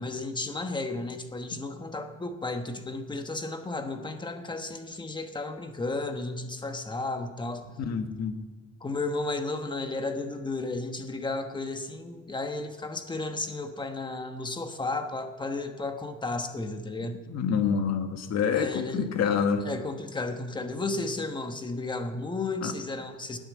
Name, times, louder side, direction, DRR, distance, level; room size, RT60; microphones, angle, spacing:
voice 1, 0.0-7.7 8.8-17.2 18.5-19.1 19.6-23.4, left 2 dB, 15° left, 6 dB, 1.1 m, -33 dB
voice 2, 7.9-8.3 17.3-19.6 22.6-22.7, left 6 dB, 55° left, 7 dB, 1.5 m, -27 dB
19.5 x 9.0 x 7.4 m, 1.3 s
cardioid pair, 180°, 32 cm